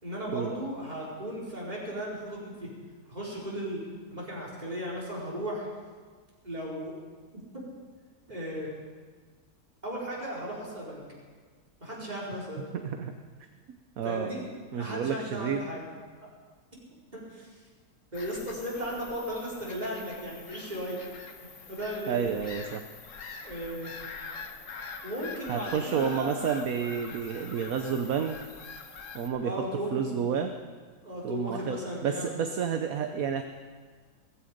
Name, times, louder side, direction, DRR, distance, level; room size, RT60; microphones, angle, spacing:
voice 1, 0.0-2.7 3.1-3.8 4.1-5.7 6.4-6.9 7.5-7.6 8.3-8.7 9.8-11.0 11.8-12.6 14.0-14.5 14.7-15.9 17.1-17.5 18.1-21.1 21.7-22.2 23.4-23.9 25.0-26.5 29.4-30.3 31.0-32.3, equal, 25° right, -5 dB, 4.8 m, -36 dB
voice 2, 12.8-13.1 14.0-14.3 14.7-15.6 22.1-22.8 25.5-28.4 29.1-29.6 29.9-30.5 31.2-33.4, right 7 dB, 65° right, 6 dB, 1.2 m, -30 dB
Bird vocalization bird call bird song / Gull seagull, 18.1-29.3, left 5 dB, 55° left, 1.4 m, -44 dB
18.0 x 15.0 x 5.2 m, 1.5 s
omnidirectional pair, 1.7 m